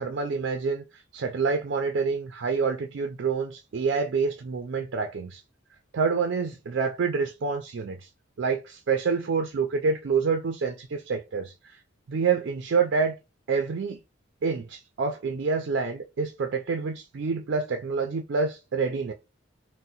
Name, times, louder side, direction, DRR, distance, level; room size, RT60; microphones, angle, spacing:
voice 1, 0.0-5.4 5.9-8.1 8.4-11.8 12.1-13.1 13.5-14.0 14.4-19.1, right 5 dB, 65° right, 0.4 m, -27 dB
2.7 x 2.1 x 3.9 m
head